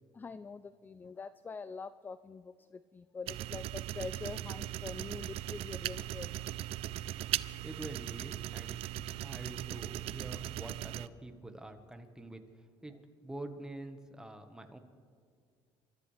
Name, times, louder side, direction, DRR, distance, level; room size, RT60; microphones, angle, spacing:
voice 1, 0.1-6.5, left 4 dB, 20° left, 14 dB, 0.4 m, -45 dB
sound 1, 3.3-11.1, right 14 dB, 65° right, 0.4 m, -39 dB
voice 2, 7.4-14.8, right 2 dB, 5° right, 6 dB, 1.3 m, -46 dB
28.5 x 13.0 x 3.3 m, 2.1 s
cardioid pair, 120°, 11 cm